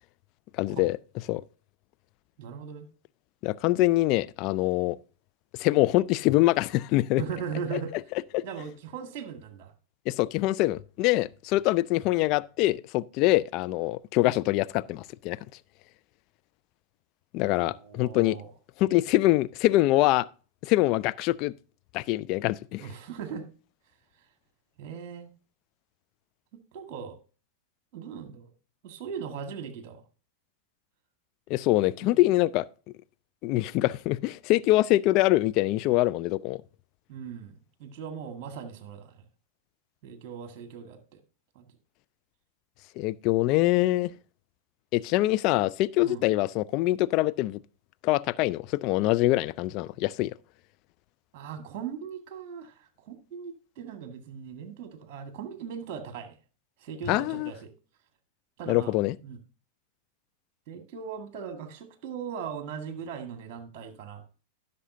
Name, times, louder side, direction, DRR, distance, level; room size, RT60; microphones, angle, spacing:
voice 1, 0.6-1.0 1.3-1.4 3.4-5.0 5.6-7.2 7.7-7.8 8.3-8.4 10.1-15.4 17.3-18.4 18.8-20.3 20.6-21.5 21.9-22.9 31.5-32.6 33.4-36.6 43.0-44.1 44.9-47.6 48.0-50.3 57.1-57.5 58.7-59.1, left 17 dB, 40° left, 0.4 m, -24 dB
voice 2, 2.4-2.9 7.2-7.9 8.4-9.7 17.6-18.5 22.8-23.5 24.8-25.3 26.5-27.2 27.9-28.5 28.8-30.0 32.0-32.1 37.1-39.2 40.0-41.2 41.6-41.7 46.0-46.2 51.3-56.4 56.8-57.7 58.6-59.0 59.2-59.4 60.7-64.2, right 7 dB, 40° right, 1.7 m, -39 dB
15.5 x 6.7 x 2.7 m
figure-of-eight pair, 90°, 0 cm